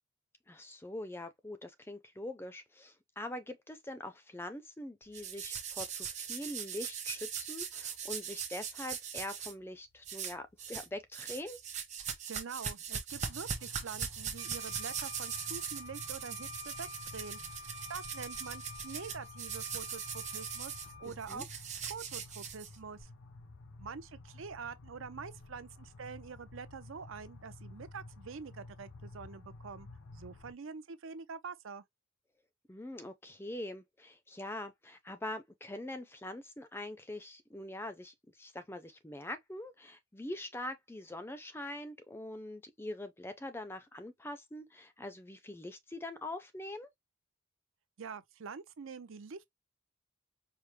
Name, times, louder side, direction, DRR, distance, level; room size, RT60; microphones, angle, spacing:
voice 1, 0.5-11.6 21.1-21.4 32.7-46.9, left 1 dB, 10° left, 0.4 m, -43 dB
sound 1, 5.1-9.5 10.0-10.9 11.1-23.0, right 7 dB, 35° right, 0.8 m, -40 dB
voice 2, 12.3-21.5 21.9-23.1 23.8-31.8 48.0-49.4, right 5 dB, 70° right, 0.5 m, -46 dB
sound 2, 13.1-30.5, left 2 dB, 70° left, 0.5 m, -52 dB
Wind instrument woodwind instrument, 14.4-21.1, left 3 dB, 55° right, 1.3 m, -49 dB
4.9 x 2.0 x 3.1 m
head